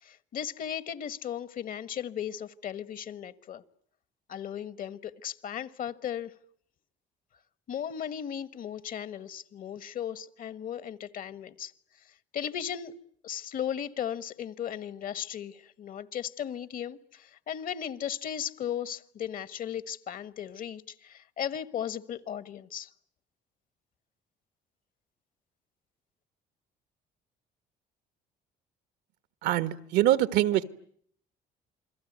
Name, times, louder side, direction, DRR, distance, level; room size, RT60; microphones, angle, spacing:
voice 1, 0.0-3.6 4.3-6.3 7.7-11.7 12.0-12.9 13.2-22.9, left 9 dB, 55° left, 1.4 m, -36 dB
voice 2, 29.4-30.6, right 13 dB, 85° right, 1.5 m, -24 dB
28.5 x 22.5 x 9.4 m
cardioid pair, 110°, 17 cm